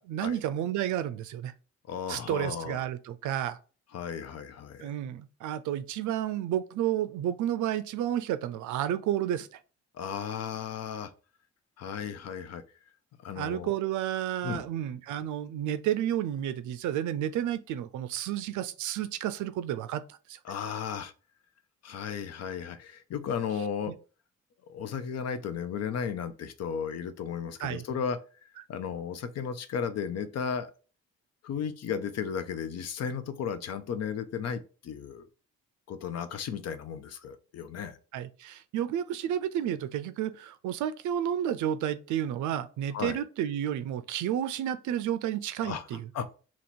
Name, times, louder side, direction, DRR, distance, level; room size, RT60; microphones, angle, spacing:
voice 1, 0.0-1.5 2.1-3.6 4.8-9.5 13.4-20.4 23.9-24.0 27.6-27.8 38.1-46.1, right 11 dB, 75° right, 0.5 m, -31 dB
voice 2, 1.9-2.8 3.9-4.9 9.9-11.1 11.8-12.6 13.2-13.7 14.4-14.6 20.4-21.1 21.8-23.9 24.7-28.2 28.7-30.7 31.4-35.3 35.9-38.0 42.9-43.2 45.6-45.8 46.1-46.3, left 7 dB, 60° left, 0.5 m, -34 dB
3.0 x 2.9 x 4.2 m
cardioid pair, 90°, 30 cm